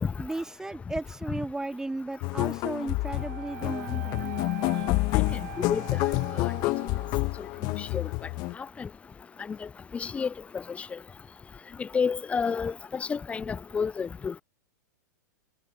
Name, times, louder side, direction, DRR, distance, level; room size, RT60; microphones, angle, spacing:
voice 1, 0.2-4.4 7.8-7.9, right 2 dB, 5° right, 3.6 m, -35 dB
sound 1, 2.2-8.5, left 22 dB, 40° left, 1.2 m, -28 dB
Wind instrument woodwind instrument, 3.0-7.3, right 17 dB, 60° right, 2.7 m, -43 dB
voice 2, 5.1-6.0 6.3-6.5 7.4-8.1 8.6-8.9 9.5-11.0 11.8-14.4, left 6 dB, 15° left, 0.4 m, -31 dB
hypercardioid pair, 105°, 10 cm